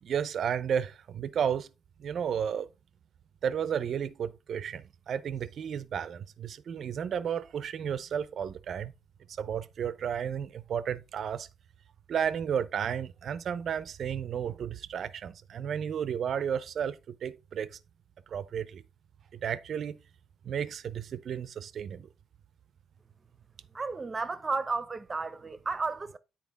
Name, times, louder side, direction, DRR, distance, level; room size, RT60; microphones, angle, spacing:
voice 1, 0.0-1.7 2.0-2.7 3.4-8.9 9.4-11.5 12.1-17.8 18.3-18.8 19.3-20.0 20.4-22.1, right 8 dB, 60° right, 0.5 m, -33 dB
voice 2, 23.7-26.2, right 4 dB, 25° right, 0.7 m, -33 dB
9.3 x 4.4 x 3.5 m
cardioid pair, 90°, 0 cm